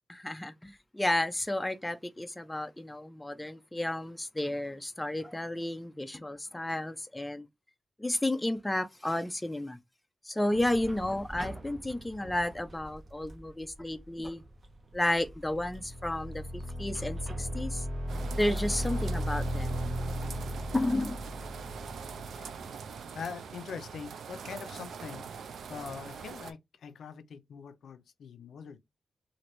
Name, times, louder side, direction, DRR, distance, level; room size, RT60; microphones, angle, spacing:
voice 1, 0.1-7.5 8.0-9.8 10.2-14.4 14.9-17.8 18.4-19.8 20.7-21.2, left 1 dB, 10° left, 0.3 m, -32 dB
sound 1, 10.5-17.8, right 2 dB, 35° right, 0.6 m, -48 dB
sound 2, 15.2-22.8, equal, 60° right, 1.5 m, -36 dB
sound 3, 18.1-26.5, right 6 dB, 85° right, 0.3 m, -43 dB
voice 2, 23.1-25.3 25.7-28.8, left 6 dB, 80° left, 0.4 m, -43 dB
2.9 x 2.5 x 3.0 m
wide cardioid pair, 160°, 0 cm